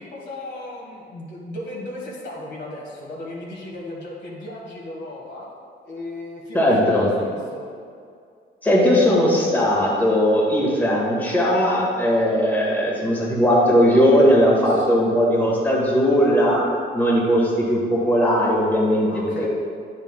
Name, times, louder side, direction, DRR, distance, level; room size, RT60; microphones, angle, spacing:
voice 1, 0.0-5.5 5.8-6.9 7.2-7.6 14.0-15.1 19.1-19.5, left 1 dB, 60° left, -3 dB, 1.5 m, -36 dB
voice 2, 6.5-7.1 8.6-16.6 16.9-19.3, equal, 10° left, -5 dB, 1.6 m, -18 dB
8.8 x 5.8 x 2.2 m, 2.2 s
cardioid pair, 90°, 20 cm